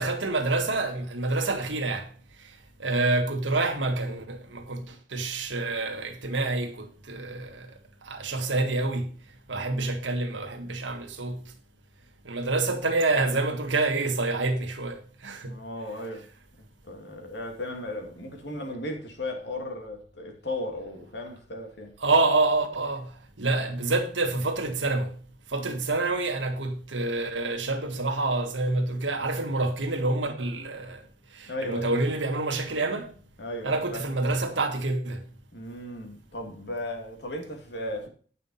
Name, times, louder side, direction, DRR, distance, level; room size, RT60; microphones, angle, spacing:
voice 1, 0.0-2.1 2.8-7.7 8.0-9.1 9.5-11.4 12.2-15.5 22.0-23.1 23.4-25.1 25.5-31.0 31.3-33.1 33.6-35.2, right 2 dB, 85° right, 1.7 m, -27 dB
voice 2, 15.4-16.3 16.9-21.9 23.6-23.7 31.5-32.0 33.4-34.0 35.5-38.1, left 1 dB, 65° left, 2.6 m, -36 dB
9.2 x 6.1 x 5.6 m
head